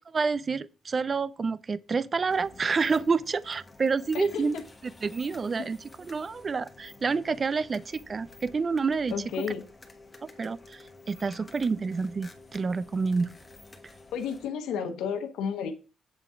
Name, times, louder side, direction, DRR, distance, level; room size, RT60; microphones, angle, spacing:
voice 1, 0.1-4.6 5.0-5.8 6.1-9.1 10.2-13.3, right 4 dB, 35° right, 0.4 m, -28 dB
sound 1, 2.3-14.5, left 2 dB, 20° left, 1.4 m, -51 dB
voice 2, 4.1-4.6 9.1-9.7 14.1-15.7, left 7 dB, 85° left, 0.9 m, -32 dB
7.7 x 3.6 x 5.6 m
cardioid pair, 90°, 0 cm